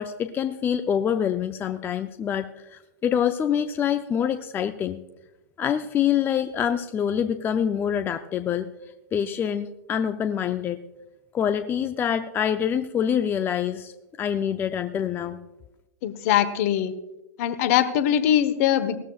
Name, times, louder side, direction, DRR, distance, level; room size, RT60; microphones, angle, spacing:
voice 1, 0.0-5.0 5.6-8.7 9.1-10.8 11.3-15.4, left 8 dB, 20° left, 10 dB, 0.5 m, -26 dB
voice 2, 16.0-16.9 17.4-19.0, left 10 dB, 50° left, 12 dB, 1.1 m, -22 dB
18.0 x 13.5 x 2.4 m, 1.0 s
hypercardioid pair, 110°, 10 cm